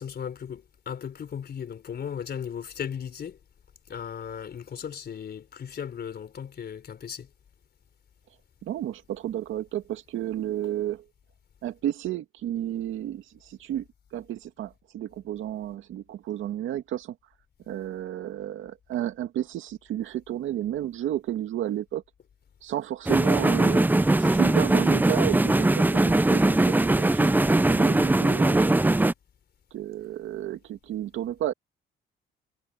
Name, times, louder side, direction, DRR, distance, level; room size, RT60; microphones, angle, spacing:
voice 1, 0.0-3.4 3.9-7.3, left 8 dB, 55° left, 4.1 m, -36 dB
voice 2, 8.6-11.0 11.6-13.8 14.1-17.2 17.7-22.0 22.6-23.9 24.2-27.3 27.7-29.0 29.7-31.5, right 12 dB, 80° right, 2.2 m, -32 dB
sound 1, 23.1-29.1, right 2 dB, 10° right, 0.6 m, -21 dB
cardioid pair, 90°, 20 cm